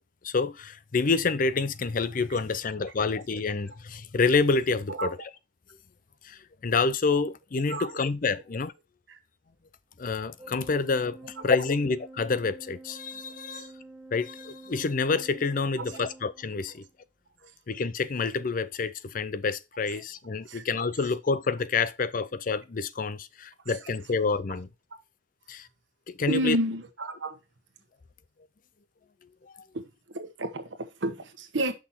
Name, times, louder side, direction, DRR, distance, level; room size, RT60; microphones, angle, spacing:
voice 1, 0.2-5.2 6.2-8.7 10.0-13.7 14.1-16.8 17.7-24.7 25.5-25.7 26.1-26.6 29.5-29.6, left 4 dB, 45° left, 0.5 m, -28 dB
voice 2, 7.7-8.0 9.1-9.2 13.5-13.7 15.8-16.0 20.5-20.6 26.3-27.4 29.7-31.7, right 1 dB, 85° right, 1.3 m, -31 dB
Organ, 10.4-16.9, right 2 dB, 15° right, 1.3 m, -48 dB
6.2 x 5.7 x 4.1 m
head